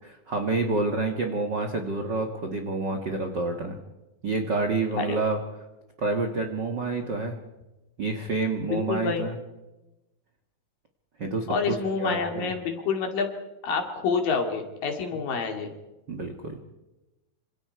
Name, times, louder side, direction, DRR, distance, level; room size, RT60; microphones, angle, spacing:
voice 1, 0.0-3.8 4.2-5.4 6.0-7.4 8.0-9.4 11.2-12.5 16.1-16.6, right 3 dB, 55° right, 4 dB, 1.2 m, -28 dB
voice 2, 8.6-9.3 11.5-13.3 13.6-15.7, left 5 dB, 65° left, 3 dB, 4.0 m, -28 dB
27.5 x 26.0 x 4.7 m, 1.0 s
omnidirectional pair, 4.4 m